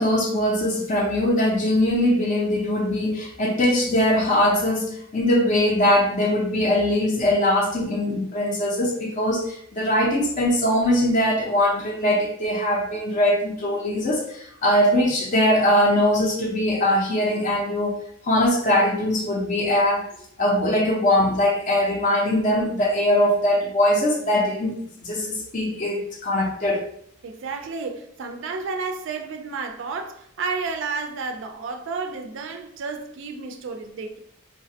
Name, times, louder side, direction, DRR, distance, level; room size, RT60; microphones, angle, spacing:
voice 1, 0.0-18.0 18.2-20.1 20.4-24.7 25.0-26.8, left 1 dB, 40° left, 0.4 m, -21 dB
voice 2, 27.2-34.2, right 4 dB, 65° right, 0.3 m, -31 dB
3.1 x 2.1 x 2.7 m
head